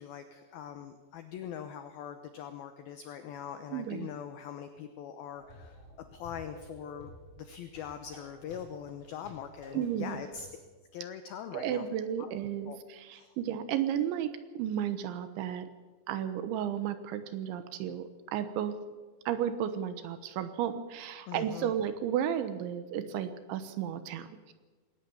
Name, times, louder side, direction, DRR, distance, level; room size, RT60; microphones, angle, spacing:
voice 1, 0.0-5.8 6.1-7.1 7.4-10.5 10.9-11.8 12.2-12.3 12.7-12.8 13.1-13.4 21.3-21.7, left 8 dB, 85° left, 9 dB, 2.1 m, -42 dB
voice 2, 3.7-4.1 9.7-10.2 11.5-15.7 16.1-18.8 19.3-24.5, right 9 dB, 75° right, 11 dB, 3.3 m, -33 dB
sound 1, 5.3-10.5, left 1 dB, 10° left, 5.1 m, -52 dB
20.0 x 18.0 x 7.1 m, 1.3 s
omnidirectional pair, 5.6 m